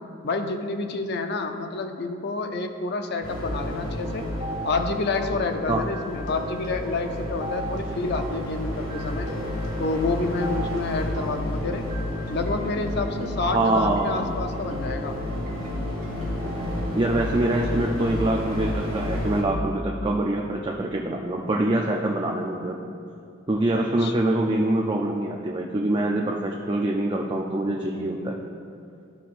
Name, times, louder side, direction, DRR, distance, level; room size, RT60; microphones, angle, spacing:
voice 1, 0.2-4.3 4.6-9.3 9.8-11.9 12.3-15.2 23.7-24.1, left 3 dB, 55° left, 6 dB, 0.5 m, -29 dB
sound 1, 3.2-19.4, left 1 dB, 80° left, 1.8 m, -31 dB
sound 2, 3.9-16.9, right 2 dB, 40° right, 1.3 m, -38 dB
voice 2, 13.4-14.3 16.9-22.8 23.5-28.4, right 1 dB, 25° right, 0 dB, 0.4 m, -24 dB
13.5 x 5.8 x 2.5 m, 2.5 s
head